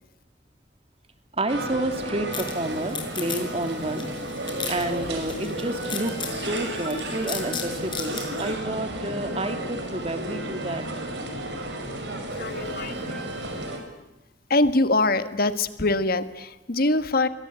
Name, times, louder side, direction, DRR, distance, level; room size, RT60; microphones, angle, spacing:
voice 1, 1.3-4.1 4.7-10.8, right 1 dB, 35° right, 7 dB, 3.2 m, -30 dB
sound 1, 1.5-13.8, right 1 dB, 80° right, 6.1 m, -33 dB
sound 2, 2.3-8.5, left 6 dB, 30° left, 5.4 m, -37 dB
voice 2, 12.4-13.2 14.5-17.3, left 2 dB, 55° left, 11 dB, 1.7 m, -23 dB
29.0 x 23.5 x 8.9 m, 0.95 s
head